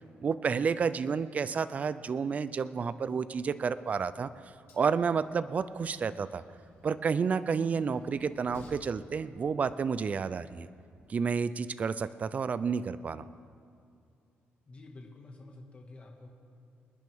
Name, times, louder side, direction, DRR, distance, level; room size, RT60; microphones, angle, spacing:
voice 1, 0.2-4.3 4.7-6.4 6.8-10.7 11.1-13.3, right 6 dB, 35° right, 15 dB, 0.4 m, -30 dB
Train, 3.3-11.0, left 3 dB, 75° left, 2.8 m, -59 dB
voice 2, 14.7-16.3, left 2 dB, 30° left, 0 dB, 1.8 m, -49 dB
26.5 x 10.5 x 3.6 m, 2.5 s
cardioid pair, 125°, 4 cm